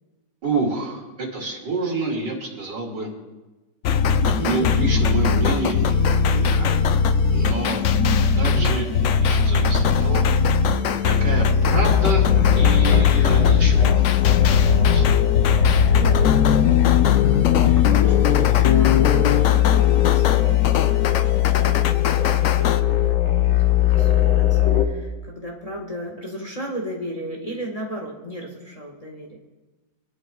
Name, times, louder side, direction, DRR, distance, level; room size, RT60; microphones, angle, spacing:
voice 1, 0.4-3.1 4.4-6.0 6.2-6.7 7.3-7.8 8.4-10.2 11.0-15.1, right 3 dB, 70° right, -1 dB, 2.9 m, -28 dB
sound 1, 3.8-22.8, left 5 dB, 90° left, 0.6 m, -20 dB
voice 2, 7.9-8.3 16.0-16.4 17.7-29.4, equal, 20° left, -1 dB, 1.4 m, -34 dB
sound 2, 11.7-24.9, left 14 dB, 75° left, 1.6 m, -19 dB
23.0 x 11.5 x 2.3 m, 1.1 s
omnidirectional pair, 1.9 m